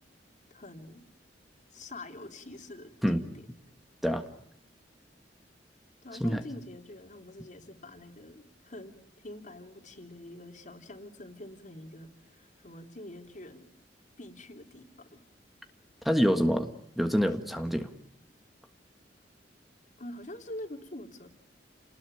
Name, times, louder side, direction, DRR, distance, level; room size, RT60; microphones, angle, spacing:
voice 1, 0.5-1.0 1.7-3.3 6.0-13.7 14.2-14.9 15.1-15.2 20.0-21.3, left 1 dB, 45° left, 7 dB, 3.3 m, -45 dB
voice 2, 16.0-17.9, equal, ahead, 7 dB, 1.6 m, -26 dB
30.0 x 20.0 x 9.2 m, 0.71 s
head